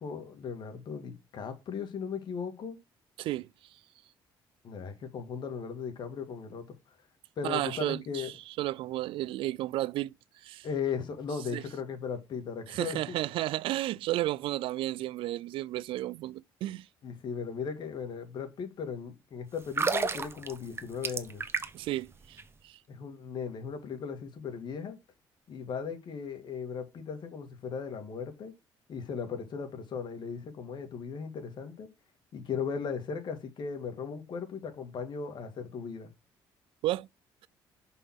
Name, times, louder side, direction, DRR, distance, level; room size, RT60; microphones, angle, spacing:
voice 1, 0.0-2.8 4.6-7.0 7.4-8.3 10.6-13.2 17.0-21.4 22.9-25.0 25.5-28.5 28.9-31.9 32.3-36.1, left 6 dB, 55° left, 2.3 m, -37 dB
voice 2, 7.4-10.1 10.4-10.7 11.5-11.6 12.7-16.9 21.7-22.8 36.8-37.1, right 16 dB, 75° right, 0.4 m, -33 dB
sound 1, 19.6-21.9 22.2-22.4, right 4 dB, 25° right, 1.0 m, -31 dB
6.1 x 5.5 x 5.8 m
cardioid pair, 95°, 9 cm